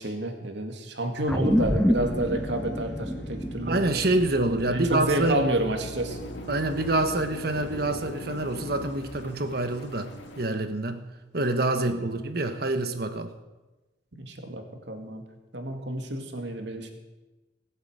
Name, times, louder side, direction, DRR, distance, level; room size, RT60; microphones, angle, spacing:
voice 1, 0.0-3.8 4.7-6.2 11.8-12.0 14.2-15.3 15.5-16.9, right 1 dB, 70° right, 5 dB, 2.1 m, -30 dB
Drill, 1.2-9.8, left 1 dB, 60° left, 2.4 m, -40 dB
sound 1, 1.3-6.0, equal, 5° left, 0.4 m, -28 dB
voice 2, 3.6-5.4 6.5-10.1 10.4-11.0 11.3-13.3, right 2 dB, 55° right, 8 dB, 1.3 m, -26 dB
sound 2, 6.1-10.5, left 1 dB, 80° left, 2.3 m, -46 dB
19.5 x 8.1 x 8.0 m, 1.1 s
head